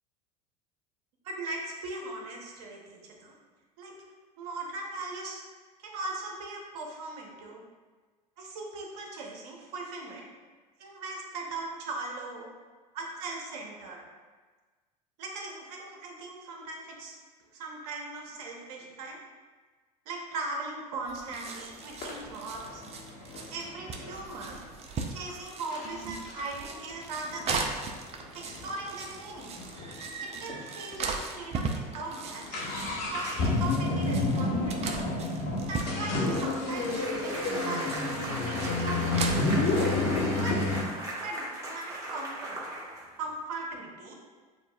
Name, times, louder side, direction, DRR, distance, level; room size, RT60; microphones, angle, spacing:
voice 1, 1.2-3.4 3.8-4.0 4.4-5.4 5.8-7.6 8.4-10.3 10.8-12.5 12.9-14.0 15.2-17.2 17.5-19.2 20.1-22.8 23.5-24.6 25.1-27.7 28.3-29.5 30.2-32.6 33.0-35.1 35.7-37.9 38.2-39.7 40.2-40.8 41.2-42.6 43.2-44.2, right 2 dB, 70° right, 0 dB, 0.9 m, -39 dB
sound 1, 21.0-40.1, right 4 dB, 30° right, 0.5 m, -39 dB
sound 2, 21.4-21.6 22.0-24.7 25.3-25.4 25.7-25.9 26.3-29.9 30.2-30.3 30.5-30.6 31.2-31.4 31.7-40.8, left 2 dB, 55° left, 1.3 m, -30 dB
sound 3, 36.6-43.3, right 1 dB, 15° right, 1.3 m, -38 dB
7.0 x 2.5 x 2.3 m, 1.4 s
hypercardioid pair, 85°, 20 cm